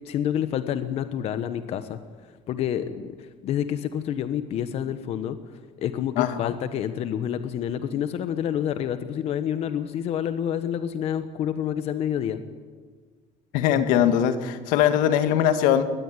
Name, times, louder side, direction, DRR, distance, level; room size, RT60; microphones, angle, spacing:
voice 1, 0.0-2.0 2.5-5.4 5.8-12.4, left 9 dB, 50° left, 11 dB, 1.2 m, -28 dB
voice 2, 6.2-6.5 13.5-15.8, left 10 dB, 85° left, 9 dB, 1.9 m, -21 dB
23.0 x 19.5 x 9.8 m, 1.6 s
cardioid pair, 155°, 13 cm